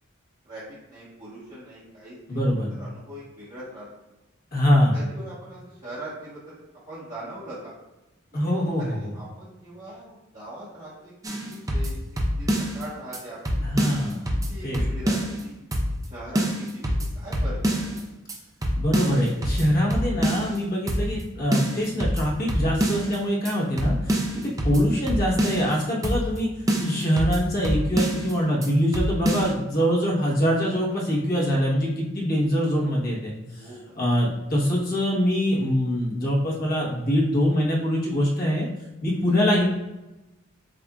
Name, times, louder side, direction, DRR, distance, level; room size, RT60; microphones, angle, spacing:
voice 1, 0.9-2.4 2.8-3.9 4.9-6.6 6.9-7.7 8.3-8.5 8.8-11.1 11.4-13.6 14.3-15.6 16.1-18.0 24.3-24.5 33.6-34.0 39.1-39.2, right 1 dB, 35° right, -11 dB, 1.2 m, -41 dB
voice 2, 2.3-2.7 4.5-5.0 8.3-9.1 13.6-14.2 14.6-14.8 18.7-24.2 24.6-26.5 26.8-33.7 34.0-38.7 39.0-39.6, equal, 45° left, -4 dB, 1.1 m, -24 dB
sound 1, 11.2-12.8 13.1-13.2 13.4-15.4 15.7-16.1 16.3-18.0 18.3-18.4 18.6-20.6 20.9-21.2 21.5-23.2 23.4-23.5 23.8-25.7 26.0-26.4 26.7-28.3 28.6-28.7 28.9-29.5, equal, 15° right, 0.5 m, -26 dB
7.6 x 2.6 x 2.3 m, 1.0 s
head